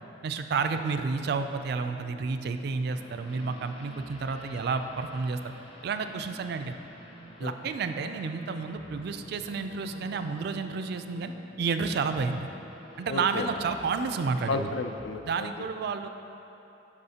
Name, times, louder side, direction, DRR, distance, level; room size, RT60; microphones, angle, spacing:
voice 1, 0.2-5.5 5.8-6.8 7.4-11.3 11.6-12.5 13.0-14.7 15.2-16.1, right 4 dB, 55° right, 8 dB, 0.3 m, -30 dB
sound 1, 1.3-15.5, left 1 dB, 90° left, 1.2 m, -53 dB
sound 2, 2.9-15.0, equal, 30° left, 0.7 m, -51 dB
voice 2, 13.1-13.5 14.5-15.7, left 3 dB, 70° left, 8 dB, 0.4 m, -33 dB
12.0 x 4.8 x 2.8 m, 3.0 s
head